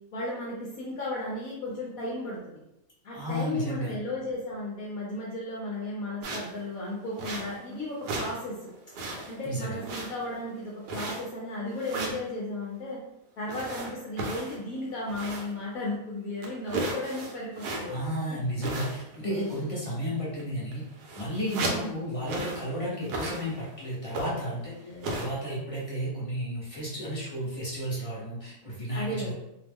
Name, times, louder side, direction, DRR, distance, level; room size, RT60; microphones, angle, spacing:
voice 1, 0.1-2.4 3.0-8.7 9.3-13.0 13.4-18.4 19.2-19.6 21.5-22.0 24.8-25.3 28.9-29.3, left 1 dB, 65° left, -4 dB, 0.9 m, -35 dB
voice 2, 3.1-4.0 9.4-9.8 17.9-20.8 21.1-29.3, equal, 35° left, -8 dB, 0.5 m, -33 dB
sound 1, 6.2-6.6 7.2-7.7 8.0-8.4 8.7-9.4 9.8-10.4 10.9-11.4 11.8-12.2 13.5-15.6 15.9-16.0 16.4-18.1 18.6-19.2 19.4-19.7 20.4-20.5 20.7-21.9 22.2-22.7 23.0-23.7 24.1-24.5 25.0-25.2, right 2 dB, 70° right, 1.1 m, -35 dB
2.9 x 2.0 x 3.4 m, 0.87 s
omnidirectional pair, 1.9 m